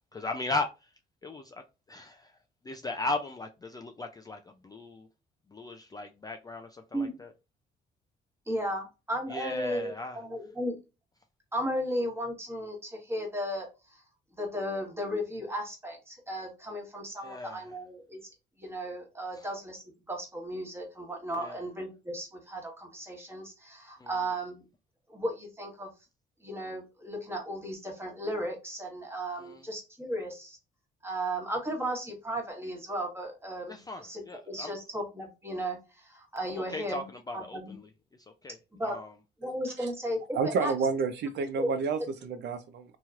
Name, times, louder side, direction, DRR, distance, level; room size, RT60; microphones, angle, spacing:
voice 1, 0.1-0.9 1.2-1.6 1.9-2.3 2.6-5.1 5.5-7.3 9.3-10.2 17.2-17.7 19.3-19.5 21.4-21.6 24.0-24.1 29.4-29.6 33.7-34.7 36.5-37.9 38.4-38.6 38.8-39.1, left 2 dB, 20° left, 0.3 m, -37 dB
voice 2, 8.5-10.8 11.5-14.0 14.3-18.2 18.6-24.6 25.1-25.9 26.4-30.6 31.0-37.1 37.3-37.8 38.8-38.9 39.4-40.7 41.6-41.7, equal, 10° right, 1.3 m, -35 dB
voice 3, 40.3-43.0, right 5 dB, 65° right, 0.4 m, -30 dB
2.9 x 2.9 x 2.4 m
cardioid pair, 90°, 20 cm